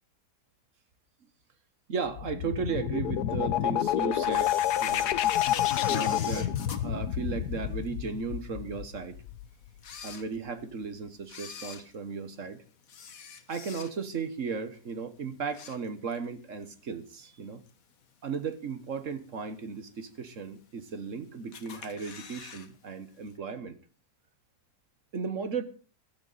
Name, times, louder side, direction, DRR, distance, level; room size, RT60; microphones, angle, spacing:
voice 1, 1.9-5.1 5.9-9.2 10.0-12.6 13.5-17.6 18.2-23.8 25.1-25.6, right 5 dB, 50° right, 11 dB, 1.5 m, -35 dB
sound 1, 2.1-9.7, left 11 dB, 75° left, 1.3 m, -29 dB
Camera, 4.3-7.9 8.4-8.5 9.2-9.3 9.7-10.8 11.2-14.2 14.6-14.9 15.2-16.3 16.6-16.7 17.7-17.8 18.3-18.7 19.2-19.3 19.5-19.6 19.7-19.8 20.6-21.1 21.5-22.7 22.9-23.0 23.3-23.4, left 6 dB, 55° left, 1.7 m, -44 dB
15.5 x 12.5 x 4.1 m, 0.38 s
omnidirectional pair, 1.8 m